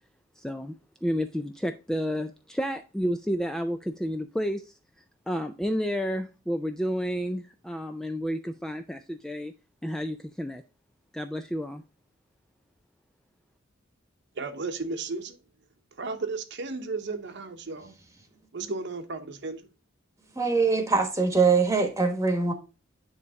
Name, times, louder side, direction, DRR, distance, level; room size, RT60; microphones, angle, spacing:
voice 1, 0.4-0.7 1.0-4.7 5.3-9.5 9.8-10.6 11.1-11.8, equal, 5° left, 0.3 m, -31 dB
voice 2, 14.4-15.4 15.9-17.9 18.5-19.7, right 3 dB, 60° right, 0.9 m, -34 dB
voice 3, 20.3-22.5, right 4 dB, 15° right, 1.2 m, -23 dB
9.4 x 3.2 x 3.5 m
head